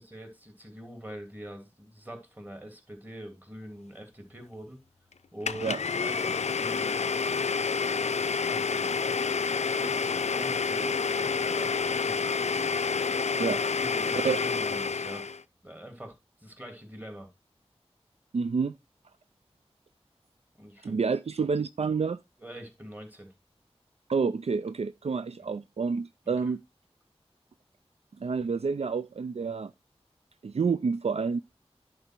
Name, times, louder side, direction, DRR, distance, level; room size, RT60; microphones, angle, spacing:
voice 1, 0.0-4.8 5.3-5.7 6.0-7.0 7.9-8.9 9.3-12.3 13.7-15.3 15.6-16.1 16.4-17.3 20.6-21.0 22.4-23.3 26.3-26.4, right 1 dB, 15° right, 2.8 m, -44 dB
Domestic sounds home sounds, 5.5-15.4, left 5 dB, 85° left, 0.4 m, -28 dB
voice 2, 18.3-18.8 20.8-22.2 24.1-26.6 28.2-29.7 30.4-31.4, right 5 dB, 70° right, 0.4 m, -28 dB
10.5 x 4.5 x 4.5 m
wide cardioid pair, 65°, 11 cm